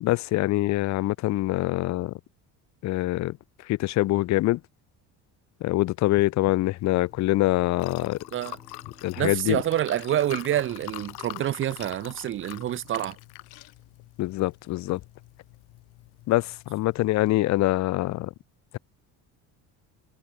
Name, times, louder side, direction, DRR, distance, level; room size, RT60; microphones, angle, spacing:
voice 1, 0.0-2.1 2.8-3.4 3.7-4.6 5.6-8.2 9.0-9.6 14.2-15.0 16.3-18.3, left 17 dB, 50° left, 0.5 m, -24 dB
Liquid, 6.8-17.3, left 22 dB, 80° left, 6.7 m, -45 dB
Bowed string instrument, 6.9-11.9, right 2 dB, 10° right, 6.1 m, -59 dB
voice 2, 9.2-13.2, right 12 dB, 35° right, 0.4 m, -27 dB
supercardioid pair, 90°, 38 cm